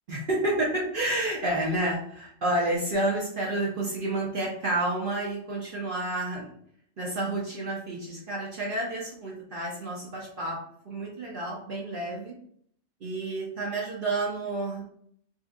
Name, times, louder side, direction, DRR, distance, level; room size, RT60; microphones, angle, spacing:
voice 1, 0.1-6.6 7.0-10.6 10.8-12.3 13.0-14.8, right 1 dB, 50° right, -4 dB, 0.8 m, -30 dB
3.5 x 2.7 x 2.5 m, 0.65 s
omnidirectional pair, 1.2 m